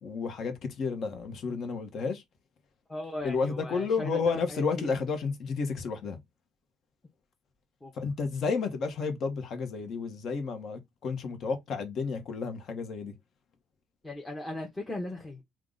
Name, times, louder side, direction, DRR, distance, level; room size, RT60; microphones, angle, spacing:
voice 1, 0.0-2.2 3.2-6.2 7.9-13.1, left 5 dB, 55° left, 1.2 m, -31 dB
voice 2, 2.9-4.9 7.8-7.9 14.0-15.4, left 1 dB, 15° left, 1.0 m, -38 dB
3.6 x 2.4 x 3.8 m
cardioid pair, 115°, 0 cm